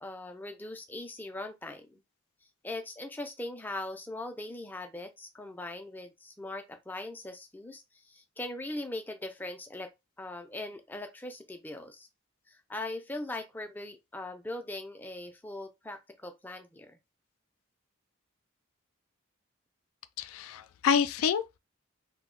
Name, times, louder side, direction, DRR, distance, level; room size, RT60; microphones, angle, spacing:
voice 1, 0.0-2.0 2.6-9.9 10.2-12.1 12.5-17.0, left 2 dB, 10° left, 0.3 m, -40 dB
voice 2, 20.2-21.6, left 7 dB, 85° left, 0.3 m, -28 dB
2.7 x 2.0 x 3.7 m
head